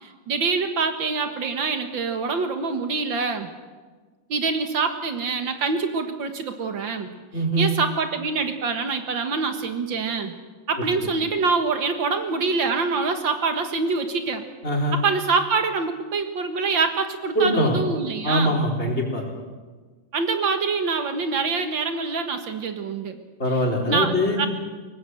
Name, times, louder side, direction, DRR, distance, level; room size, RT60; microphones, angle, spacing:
voice 1, 0.0-3.5 4.3-7.1 7.6-10.3 10.7-14.4 14.9-18.6 20.1-23.2 23.9-24.5, right 4 dB, 75° right, 7 dB, 2.3 m, -25 dB
voice 2, 7.3-7.7 11.0-11.1 14.6-15.0 17.3-17.8 18.2-19.2 23.4-24.4, equal, 35° left, -1 dB, 4.5 m, -22 dB
23.5 x 19.0 x 7.9 m, 1.4 s
omnidirectional pair, 2.1 m